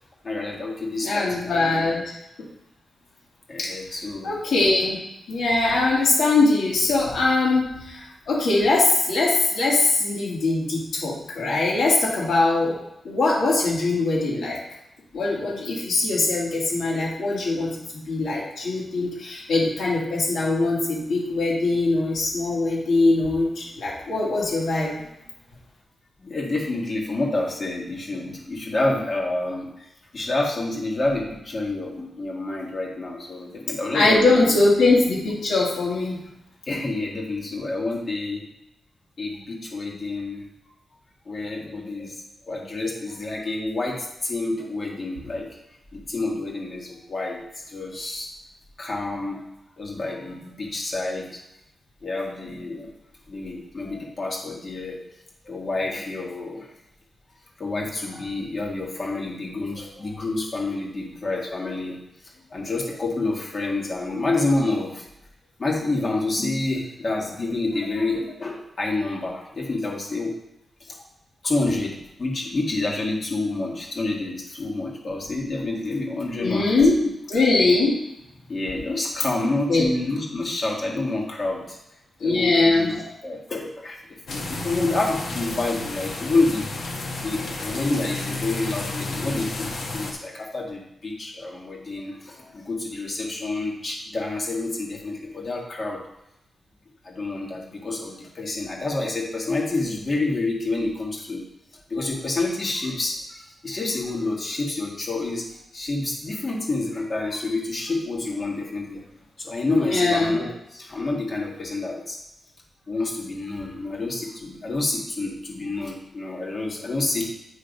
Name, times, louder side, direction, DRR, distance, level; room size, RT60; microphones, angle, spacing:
voice 1, 0.2-1.9 3.5-4.4 12.6-12.7 26.2-34.6 36.6-38.4 39.2-40.4 41.2-45.6 45.9-48.3 48.8-49.4 49.8-51.4 52.0-52.9 53.3-55.0 55.4-56.7 57.6-62.0 62.5-65.1 65.6-70.3 70.8-71.1 71.4-76.7 78.5-81.8 82.2-84.0 84.3-86.7 87.2-96.0 97.0-101.4 101.9-105.5 105.7-109.0 109.4-112.2 112.9-117.3, left 2 dB, 40° left, -2 dB, 1.7 m, -28 dB
voice 2, 1.0-2.0 3.6-3.7 4.2-5.0 5.3-12.8 13.0-14.6 15.1-24.9 33.9-36.2 76.4-77.0 77.3-78.0 79.7-79.8 82.2-82.9 109.9-110.3, left 2 dB, 90° left, -4 dB, 2.0 m, -21 dB
sound 1, 84.3-90.1, left 2 dB, 70° left, 1.1 m, -32 dB
8.5 x 3.3 x 5.2 m, 0.84 s
wide cardioid pair, 135°, 0 cm